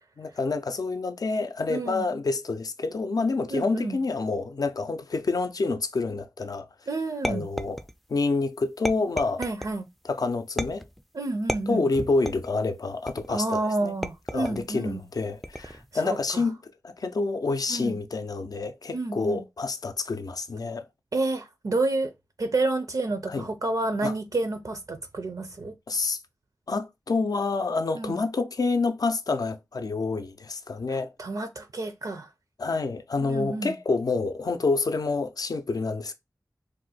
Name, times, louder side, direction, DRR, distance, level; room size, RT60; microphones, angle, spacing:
voice 1, 0.2-6.7 7.3-7.8 8.1-9.4 10.0-10.8 11.7-13.9 14.3-16.6 16.8-20.9 23.3-23.5 24.0-24.1 25.9-26.2 26.7-31.1 32.6-36.1, left 3 dB, 70° left, 0.4 m, -28 dB
voice 2, 1.7-2.1 3.5-4.0 6.9-7.4 9.4-9.9 11.1-11.9 13.3-15.0 15.6-16.5 17.7-18.0 18.9-19.4 21.1-22.1 22.4-25.7 27.9-28.2 30.9-32.3 33.2-33.8, right 2 dB, 65° right, 0.4 m, -30 dB
sound 1, 7.2-8.2 8.8-9.8 10.6-11.0 11.5-12.5 13.1-13.5 14.0-14.7 15.4-15.9, equal, ahead, 0.3 m, -33 dB
2.6 x 2.1 x 4.0 m
wide cardioid pair, 45°, 7 cm